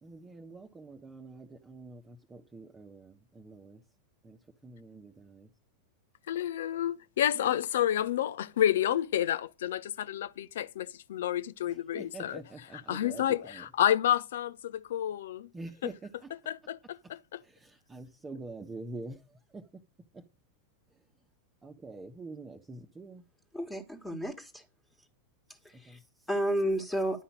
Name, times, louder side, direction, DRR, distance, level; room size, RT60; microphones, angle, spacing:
voice 1, 0.0-3.8 4.2-5.5 7.3-7.6 11.7-13.7 15.5-16.3 17.0-17.1 17.4-19.8 20.1-20.2 20.9-21.0 21.6-23.2 25.8-26.3, right 3 dB, 15° right, 1.2 m, -46 dB
voice 2, 6.3-12.4 12.9-15.5 16.5-17.4, left 11 dB, 60° left, 0.7 m, -30 dB
voice 3, 23.5-24.7 25.6-26.0 26.3-27.2, right 1 dB, 5° left, 1.9 m, -32 dB
11.5 x 5.7 x 8.7 m
figure-of-eight pair, 90°, 0 cm